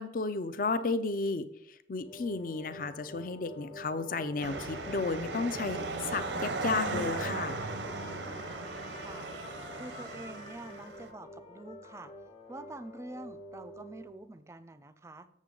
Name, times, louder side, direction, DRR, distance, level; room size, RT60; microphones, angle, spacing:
voice 1, 0.0-7.6, left 3 dB, 50° left, 12 dB, 0.5 m, -33 dB
sound 1, 2.0-14.2, left 1 dB, 75° left, 1.3 m, -48 dB
sound 2, 4.4-11.1, right 3 dB, 85° right, 0.7 m, -37 dB
Trumpet, 6.4-13.0, left 3 dB, 30° left, 1.1 m, -53 dB
voice 2, 8.3-9.3 9.7-12.1 12.5-15.3, right 2 dB, 15° right, 12 dB, 0.4 m, -47 dB
7.3 x 7.3 x 3.8 m, 0.76 s
head